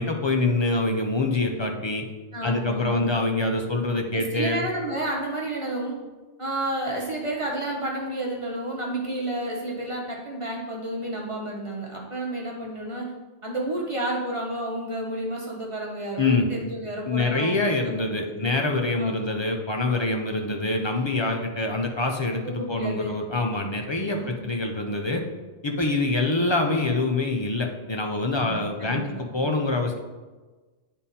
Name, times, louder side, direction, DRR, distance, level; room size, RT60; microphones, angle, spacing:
voice 1, 0.0-2.0 2.4-4.6 16.2-16.5 17.1-25.2 25.6-30.0, left 2 dB, 35° left, 3 dB, 0.5 m, -25 dB
voice 2, 2.3-3.1 4.1-6.0 6.4-13.1 13.4-18.6 18.9-19.4 19.9-20.3 22.4-23.1 24.1-24.4 28.4-29.1 29.4-29.5, right 1 dB, 30° right, -2 dB, 1.1 m, -31 dB
8.9 x 3.7 x 4.2 m, 1.3 s
omnidirectional pair, 1.2 m